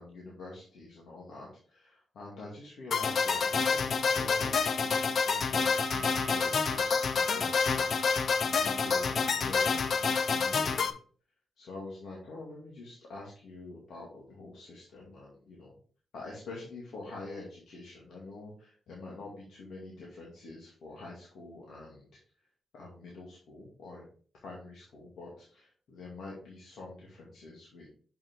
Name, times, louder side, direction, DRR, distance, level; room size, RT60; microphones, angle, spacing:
voice 1, 0.0-10.9 11.6-15.7 16.1-22.1 22.7-24.1 24.4-27.9, left 2 dB, 85° left, -4 dB, 2.3 m, -46 dB
sound 1, 2.9-10.9, left 5 dB, 60° left, 0.6 m, -28 dB
Wind instrument woodwind instrument, 5.6-11.0, right 3 dB, 40° right, 0.9 m, -46 dB
7.0 x 5.8 x 3.8 m, 0.43 s
cardioid pair, 95°, 0 cm